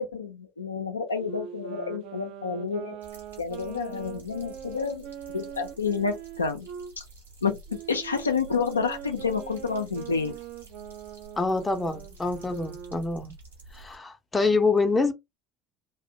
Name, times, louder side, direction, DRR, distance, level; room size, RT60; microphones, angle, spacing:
voice 1, 0.0-3.0 3.4-6.7 7.0-7.1 7.4-7.6 7.9-10.3, left 5 dB, 85° left, 0.3 m, -29 dB
Wind instrument woodwind instrument, 1.1-6.9 7.7-13.1, right 9 dB, 55° right, 0.4 m, -42 dB
sound 1, 3.0-14.0, right 1 dB, 80° right, 0.9 m, -50 dB
voice 2, 11.4-13.3 13.7-15.1, left 3 dB, 15° left, 0.5 m, -26 dB
2.4 x 2.0 x 2.7 m
figure-of-eight pair, 65°, 0 cm